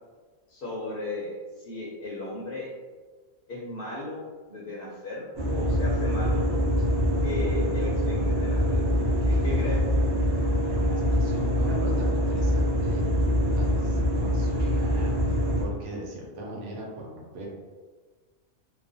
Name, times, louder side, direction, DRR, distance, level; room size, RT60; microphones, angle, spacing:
voice 1, 0.5-2.7 3.5-5.3 5.5-6.9 7.2-8.9 9.3-10.0, left 2 dB, 60° left, -6 dB, 0.6 m, -36 dB
sound 1, 5.3-15.6, equal, 25° right, 0.6 m, -24 dB
voice 2, 10.7-13.0 13.5-17.5, equal, 75° right, -2 dB, 0.9 m, -39 dB
2.3 x 2.1 x 2.5 m, 1.4 s
omnidirectional pair, 1.3 m